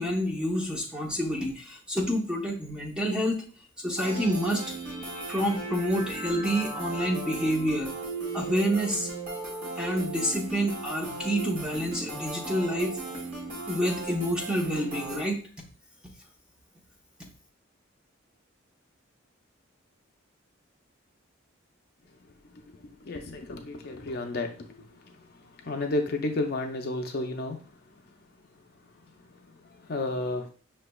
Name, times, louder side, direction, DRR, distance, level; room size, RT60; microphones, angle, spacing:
voice 1, 0.0-3.4 3.8-4.6 5.3-7.9 8.3-9.1 9.8-13.0 13.7-15.4, equal, 5° right, -1 dB, 0.7 m, -28 dB
sound 1, 4.0-15.3, right 3 dB, 35° right, 1.3 m, -36 dB
voice 2, 23.0-27.6 29.7-30.5, left 2 dB, 45° left, 3 dB, 0.5 m, -32 dB
5.8 x 3.2 x 2.2 m, 0.39 s
head